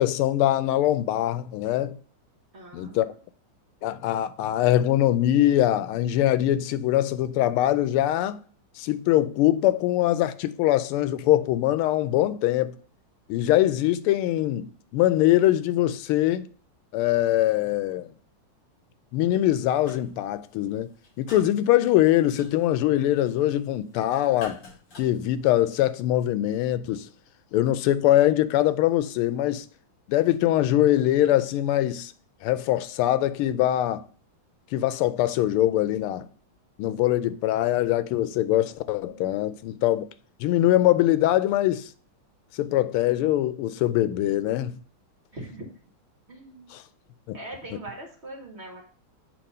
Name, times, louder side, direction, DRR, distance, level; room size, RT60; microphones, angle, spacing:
voice 1, 0.0-2.0 2.7-3.1 3.8-8.4 8.8-12.7 13.3-16.5 16.9-18.1 19.1-20.9 21.2-24.6 25.0-27.1 27.5-29.6 30.1-32.1 32.4-34.0 34.7-36.3 36.8-40.1 40.4-41.9 42.6-44.7 46.7-46.8 47.3-47.4, left 13 dB, 90° left, 1.5 m, -23 dB
voice 2, 2.5-3.1 39.1-39.5 45.3-45.7 46.3-46.7 47.3-48.8, right 2 dB, 35° right, 1.3 m, -41 dB
sound 1, 19.4-20.2 20.4-25.8, left 3 dB, 55° left, 4.7 m, -48 dB
8.5 x 2.9 x 5.4 m
omnidirectional pair, 2.3 m